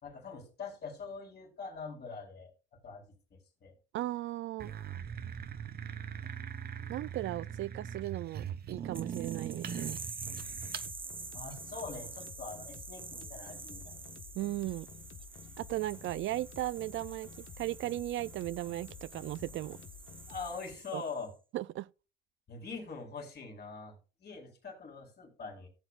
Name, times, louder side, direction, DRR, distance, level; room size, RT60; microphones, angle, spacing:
voice 1, 0.0-2.5 2.8-3.1 3.3-3.8 11.3-14.0 20.3-21.3 22.5-25.7, left 4 dB, 55° left, 4.1 m, -43 dB
voice 2, 3.9-4.7 6.9-10.0 14.4-14.9 15.6-17.3 17.6-19.8 20.9-21.0 21.5-21.9, right 15 dB, 75° right, 0.4 m, -36 dB
sound 1, 4.6-10.9, right 8 dB, 50° right, 1.0 m, -41 dB
sound 2, 8.9-21.3, right 4 dB, 25° right, 1.2 m, -47 dB
sound 3, 10.2-20.6, left 7 dB, 75° left, 1.3 m, -51 dB
15.5 x 7.8 x 2.4 m
cardioid pair, 90°, 20 cm